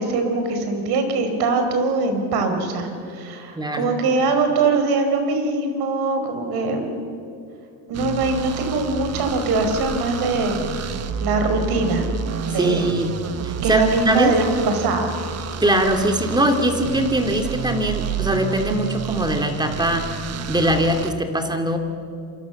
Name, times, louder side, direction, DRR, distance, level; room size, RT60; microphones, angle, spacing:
voice 1, 0.0-7.0 7.9-10.6 11.2-12.1 12.5-12.8 13.6-15.1, right 3 dB, 55° right, 6 dB, 5.0 m, -22 dB
voice 2, 3.5-3.9 12.6-13.1 13.4-14.3 15.6-20.1 20.5-21.8, right 1 dB, 10° right, 5 dB, 2.7 m, -21 dB
sound 1, 7.9-21.1, right 7 dB, 35° right, 1.4 m, -30 dB
27.5 x 24.5 x 7.2 m, 2.5 s
supercardioid pair, 115°, 45 cm